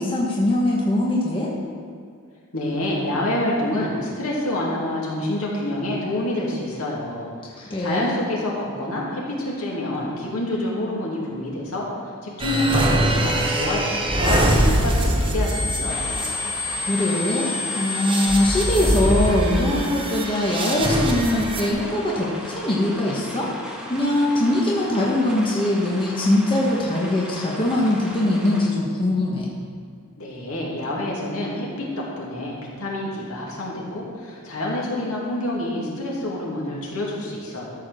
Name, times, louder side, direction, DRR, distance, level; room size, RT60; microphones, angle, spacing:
voice 1, 0.0-1.5 7.6-8.2 16.9-23.5 23.9-29.5, left 1 dB, 25° left, -4 dB, 1.3 m, -22 dB
voice 2, 2.5-11.9 12.2-16.3 30.2-37.7, left 1 dB, 70° left, -4 dB, 2.4 m, -27 dB
sound 1, 12.4-21.7, equal, 25° right, 1.1 m, -23 dB
sound 2, 15.9-28.7, equal, 5° right, 1.3 m, -37 dB
13.0 x 4.9 x 6.3 m, 2.3 s
head